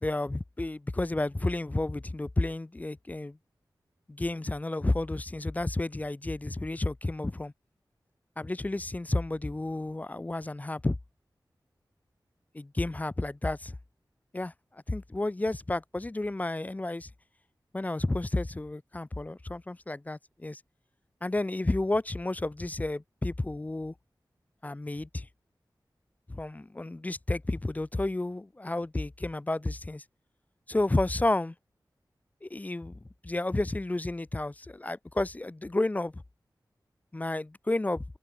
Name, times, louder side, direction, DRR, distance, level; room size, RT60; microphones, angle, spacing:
voice 1, 0.0-3.4 4.1-7.5 8.4-11.0 12.5-13.8 14.3-17.1 17.7-20.6 21.2-23.9 24.6-25.3 26.3-30.0 30.7-31.5 32.4-36.2 37.1-38.0, left 2 dB, 20° left, 0.3 m, -31 dB
wide cardioid pair, 65°, 8 cm